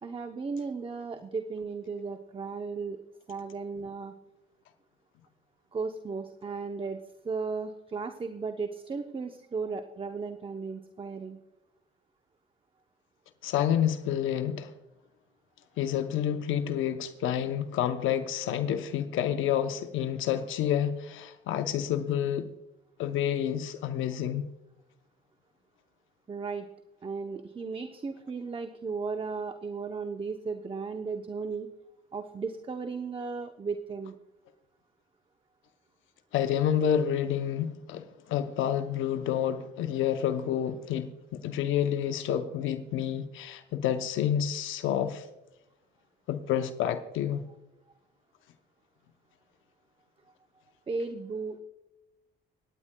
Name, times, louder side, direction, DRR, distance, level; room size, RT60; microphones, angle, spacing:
voice 1, 0.0-3.0 3.3-4.1 5.7-11.4 26.3-26.7 27.0-31.7 32.1-34.2 50.9-51.6, right 4 dB, 25° right, 0.7 m, -35 dB
voice 2, 13.4-14.7 15.8-22.5 23.0-24.4 36.3-45.3 46.3-47.4, left 9 dB, 85° left, 0.7 m, -29 dB
24.5 x 9.8 x 2.2 m
cardioid pair, 90°, 20 cm